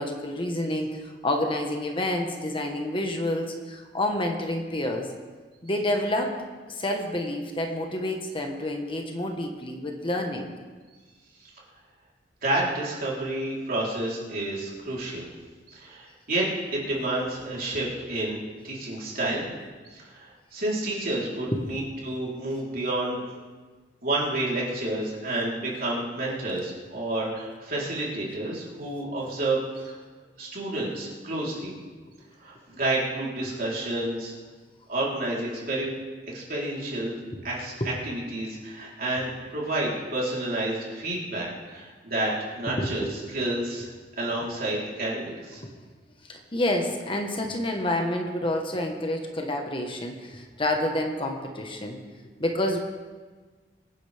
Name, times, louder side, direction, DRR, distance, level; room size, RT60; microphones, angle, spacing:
voice 1, 0.0-5.1 5.6-6.4 6.7-10.5 21.5-21.6 37.8-37.9 42.8-43.1 45.6-45.7 46.3-52.0 52.4-52.8, left 1 dB, 30° left, 3 dB, 1.4 m, -28 dB
voice 2, 12.4-15.3 15.7-16.4 16.7-19.5 19.9-23.4 24.0-30.0 30.4-31.7 32.4-34.3 34.9-35.9 36.3-37.2 37.4-43.0 43.3-43.9 44.2-45.6, right 2 dB, 55° right, -5 dB, 3.9 m, -30 dB
24.0 x 10.0 x 3.5 m, 1.4 s
head